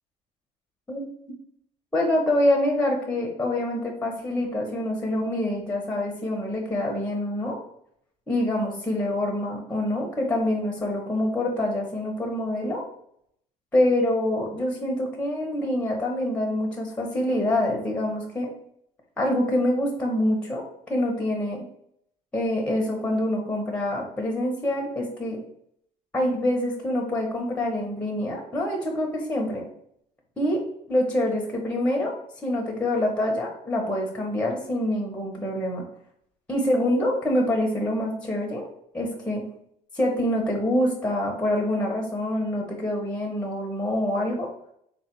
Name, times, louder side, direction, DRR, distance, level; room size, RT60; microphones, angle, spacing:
voice 1, 1.9-7.6 8.3-12.8 13.7-18.5 19.2-20.6 20.9-21.6 22.3-25.4 26.1-29.6 30.4-30.6 30.9-32.1 32.4-35.8 36.5-38.7 38.9-39.4 39.9-44.5, left 1 dB, 10° left, 0 dB, 1.0 m, -26 dB
3.6 x 2.4 x 4.5 m, 0.71 s
cardioid pair, 110°, 17 cm